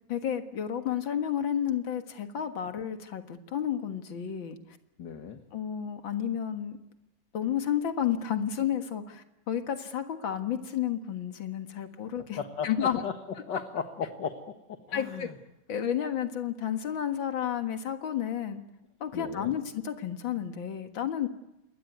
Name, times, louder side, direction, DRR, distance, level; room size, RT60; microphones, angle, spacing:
voice 1, 0.1-4.6 5.5-6.8 7.3-12.4 12.6-13.0 14.9-15.3 15.7-18.6 19.0-21.3, left 9 dB, 90° left, 7 dB, 2.4 m, -31 dB
voice 2, 5.0-5.4 12.4-14.4 14.7-15.4 19.1-19.6, left 6 dB, 65° left, 6 dB, 2.3 m, -36 dB
27.5 x 21.5 x 9.4 m, 0.90 s
omnidirectional pair, 2.0 m